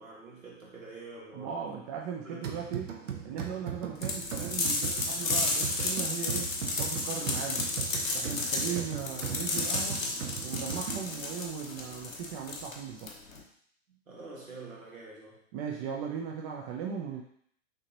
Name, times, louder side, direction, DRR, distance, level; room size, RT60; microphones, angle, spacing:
voice 1, 0.0-1.7 2.2-2.6 8.6-8.9 14.1-15.4, right 3 dB, 90° right, -4 dB, 2.0 m, -46 dB
voice 2, 1.3-2.9 3.2-7.7 8.1-10.1 10.4-13.1 15.5-17.2, right 7 dB, 30° right, 0 dB, 0.5 m, -38 dB
sound 1, 2.4-11.3, right 8 dB, 70° right, 0.9 m, -38 dB
sound 2, 4.0-13.4, left 3 dB, 85° left, 1.1 m, -32 dB
6.3 x 2.8 x 2.9 m, 0.65 s
hypercardioid pair, 115°, 39 cm